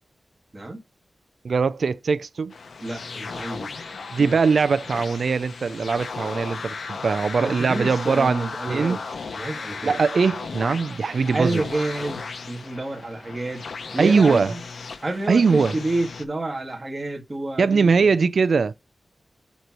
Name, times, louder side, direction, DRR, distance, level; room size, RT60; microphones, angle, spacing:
voice 1, 1.4-2.5 4.1-9.0 9.8-11.6 14.0-14.5 15.3-15.8 17.6-18.7, right 5 dB, 70° right, 0.4 m, -21 dB
sound 1, 2.5-16.2, left 4 dB, 80° left, 1.0 m, -36 dB
voice 2, 2.8-3.7 4.2-4.3 7.4-9.0 9.3-10.0 11.3-13.6 13.9-14.6 15.0-17.9, right 2 dB, 25° right, 1.6 m, -29 dB
8.0 x 3.0 x 6.0 m
wide cardioid pair, 120°, 0 cm